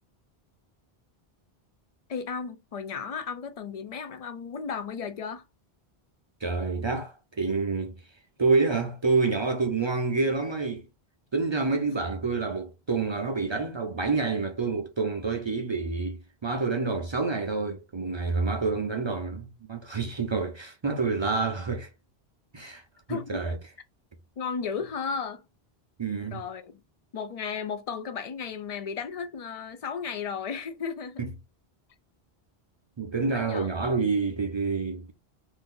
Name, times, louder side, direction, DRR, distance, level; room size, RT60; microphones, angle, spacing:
voice 1, 2.1-5.4 23.1-23.4 24.4-25.4 26.3-26.8 27.1-31.2 33.3-33.7, left 6 dB, 50° left, 0.4 m, -34 dB
voice 2, 6.4-8.0 8.4-10.9 11.3-21.9 22.5-22.8 23.1-23.6 26.0-26.4 31.2-31.3 33.0-35.1, right 4 dB, 40° right, 0.4 m, -28 dB
2.6 x 2.5 x 3.6 m
omnidirectional pair, 1.1 m